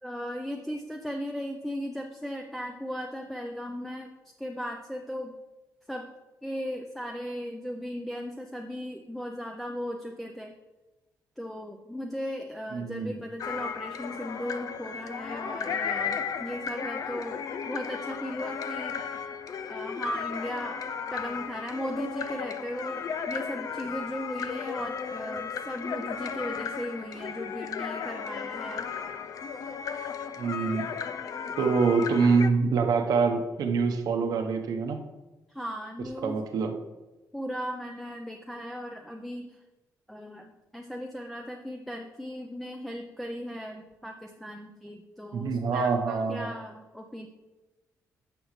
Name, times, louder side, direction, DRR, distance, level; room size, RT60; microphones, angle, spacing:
voice 1, 0.0-5.3 5.9-6.1 6.4-10.5 11.4-19.3 19.7-20.8 21.1-28.9 31.6-31.7 35.5-36.4 37.3-39.6 40.1-47.3, equal, 5° left, 2 dB, 0.6 m, -37 dB
voice 2, 12.7-13.2 30.4-30.9 31.6-35.0 36.2-36.7 45.3-46.5, right 5 dB, 75° right, 4 dB, 1.0 m, -25 dB
sound 1, 13.4-32.5, left 7 dB, 60° left, 0.5 m, -35 dB
10.5 x 6.3 x 3.2 m, 1.1 s
cardioid pair, 95°, 7 cm